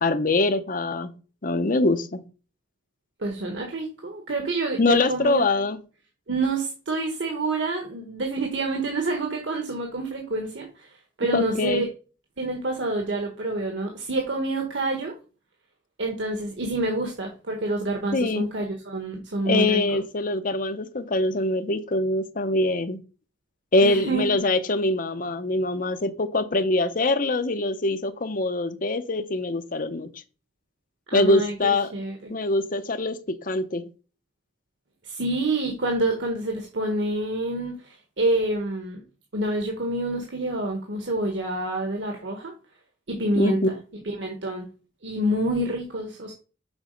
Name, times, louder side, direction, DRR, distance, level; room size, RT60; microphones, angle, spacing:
voice 1, 0.0-1.1 1.4-2.2 4.8-5.8 11.3-11.8 16.8-16.9 18.1-18.5 19.4-23.0 23.7-30.1 31.1-31.9 32.3-33.9 43.4-43.7, left 2 dB, 50° left, 0.8 m, -23 dB
voice 2, 3.2-5.4 6.3-11.9 12.4-15.1 16.0-19.8 23.8-24.3 31.1-32.3 35.0-39.0 39.3-42.5 43.1-43.7 44.0-44.7 45.0-46.3, right 2 dB, 90° right, 1.4 m, -27 dB
7.2 x 4.1 x 5.3 m
head